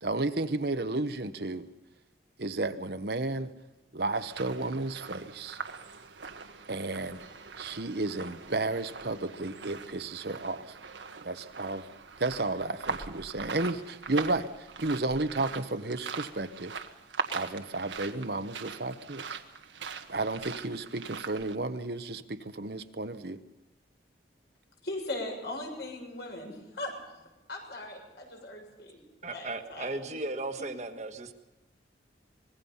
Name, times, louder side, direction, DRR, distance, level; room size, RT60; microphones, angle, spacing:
voice 1, 0.0-1.7 2.4-3.5 3.9-5.6 6.7-7.2 7.6-10.7 11.2-11.8 12.2-16.7 17.3-19.4 20.1-23.4, right 2 dB, 60° right, 1.1 m, -32 dB
sound 1, 4.1-21.6, right 5 dB, 85° right, 1.6 m, -41 dB
voice 2, 24.8-26.9 27.5-29.0 29.3-29.9 30.6-30.7, left 2 dB, 65° left, 7.1 m, -39 dB
voice 3, 29.2-31.3, right 2 dB, 40° right, 1.5 m, -36 dB
25.5 x 21.0 x 5.7 m
head